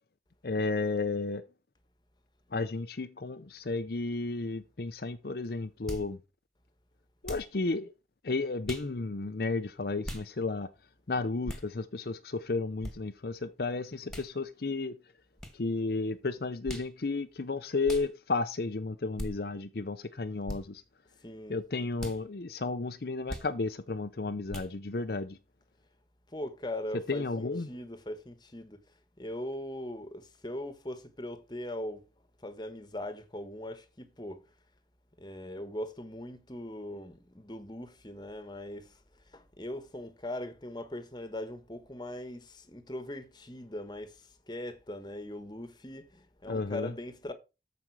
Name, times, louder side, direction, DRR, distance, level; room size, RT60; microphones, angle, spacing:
voice 1, 0.4-1.4 2.5-6.2 7.2-7.9 8.2-10.7 11.1-15.0 15.5-20.8 21.5-25.4 27.1-27.7 46.5-46.9, left 3 dB, 55° left, 0.6 m, -33 dB
sound 1, 5.9-6.1 7.2-7.5 8.6-8.9 10.0-10.3 11.4-11.7 12.8-13.0 14.1-14.3 15.4-15.6 16.6-16.9 17.8-18.1 19.2-19.3 20.4-20.6 22.0-22.2 23.3-23.5 24.5-24.7, equal, 5° left, 1.8 m, -39 dB
voice 2, 21.2-21.6 26.3-28.8 29.2-32.0 32.4-34.4 35.2-47.3, left 1 dB, 25° left, 1.3 m, -40 dB
13.5 x 5.2 x 4.7 m
head